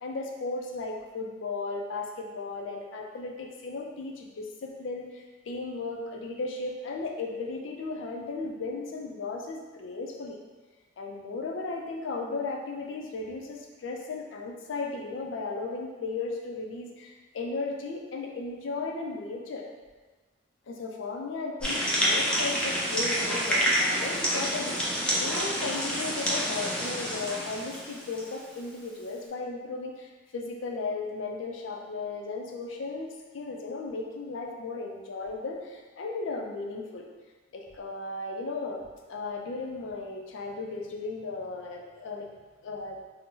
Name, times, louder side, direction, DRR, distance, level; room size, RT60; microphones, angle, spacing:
voice 1, 0.0-10.4 11.0-19.7 20.7-33.1 33.3-37.1 37.5-38.8 39.1-42.3 42.6-43.0, left 3 dB, 85° left, 1 dB, 0.4 m, -35 dB
sound 1, 21.6-28.4, equal, 5° left, 0.5 m, -28 dB
2.6 x 2.0 x 3.6 m, 1.3 s
head